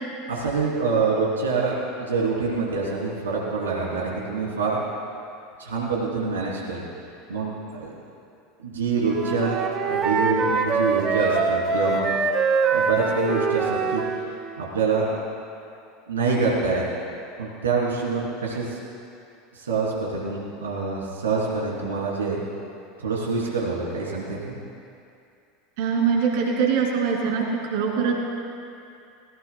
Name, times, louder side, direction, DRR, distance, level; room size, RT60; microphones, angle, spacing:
voice 1, 0.3-4.8 5.6-6.8 7.3-7.9 8.6-12.1 12.7-14.0 14.6-15.1 16.1-16.8 17.4-18.8 19.5-22.4 23.0-24.6, right 4 dB, 75° right, -4 dB, 3.3 m, -26 dB
Wind instrument woodwind instrument, 9.0-14.3, right 4 dB, 35° right, 1.3 m, -24 dB
voice 2, 25.8-27.4 27.7-28.1, right 6 dB, 55° right, -2 dB, 2.9 m, -22 dB
19.0 x 19.0 x 2.3 m, 2.5 s
figure-of-eight pair, 75°, 0 cm